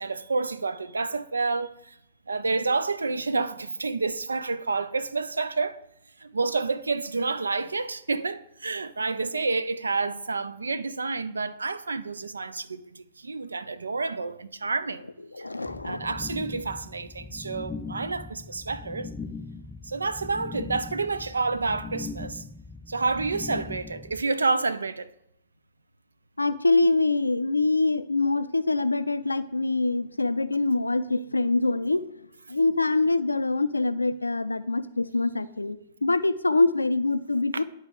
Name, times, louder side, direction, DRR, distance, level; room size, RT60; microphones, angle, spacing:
voice 1, 0.0-2.0 2.3-5.8 6.2-15.0 15.4-15.5 15.8-19.1 19.8-22.5 22.9-25.1 37.5-37.6, right 3 dB, 80° right, 0.4 m, -29 dB
voice 2, 15.3-16.0 26.4-32.0 32.5-37.6, left 3 dB, 85° left, 0.3 m, -24 dB
sound 1, 15.6-24.2, left 4 dB, 15° left, 0.4 m, -40 dB
11.0 x 3.9 x 3.7 m
figure-of-eight pair, 105°, 0 cm